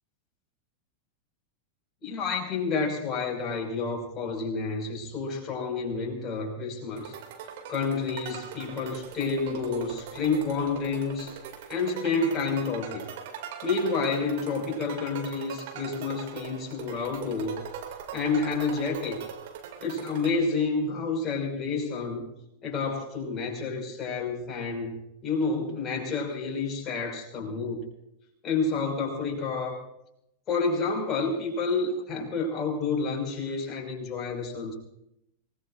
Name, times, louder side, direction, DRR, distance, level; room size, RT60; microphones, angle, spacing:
voice 1, 2.0-7.2 7.7-11.3 11.7-13.1 13.6-17.6 18.1-19.2 19.8-22.2 22.6-24.9 25.2-27.8 28.4-29.8 30.5-34.7, left 4 dB, 30° left, 2 dB, 5.4 m, -29 dB
sound 1, 7.0-20.3, right 7 dB, 50° right, 2.5 m, -41 dB
27.0 x 19.0 x 2.5 m, 0.80 s
figure-of-eight pair, 90°, 0 cm